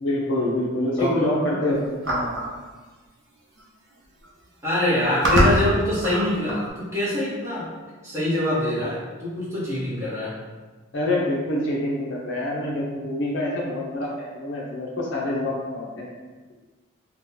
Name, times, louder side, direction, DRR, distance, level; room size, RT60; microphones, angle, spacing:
voice 1, 0.0-1.8 2.1-2.4 10.9-16.1, left 1 dB, 60° left, -3 dB, 0.6 m, -26 dB
voice 2, 1.0-1.6 4.6-7.7 8.0-10.3, left 1 dB, 15° right, -10 dB, 0.9 m, -25 dB
sound 1, 2.0-2.5 3.6-3.7 3.9-4.3 4.9-6.7, right 1 dB, 55° right, 0.7 m, -23 dB
2.7 x 2.2 x 3.8 m, 1.3 s
head